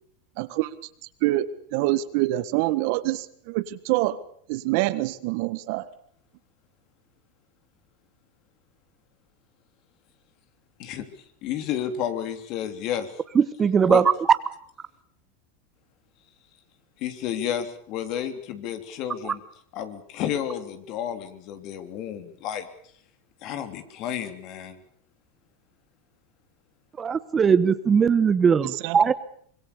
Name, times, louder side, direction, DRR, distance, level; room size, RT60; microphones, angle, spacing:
voice 1, 0.4-0.7 1.2-4.2 4.5-5.9 28.6-29.0, right 17 dB, 60° right, 14 dB, 1.6 m, -26 dB
voice 2, 11.4-13.1 13.9-14.0 17.0-19.4 19.7-22.7 23.4-24.8, left 9 dB, 50° left, 9 dB, 3.3 m, -31 dB
voice 3, 13.3-14.1 19.2-19.3 27.0-29.1, right 6 dB, 25° right, 14 dB, 1.1 m, -20 dB
24.5 x 22.5 x 7.0 m, 0.62 s
hypercardioid pair, 115°, 0 cm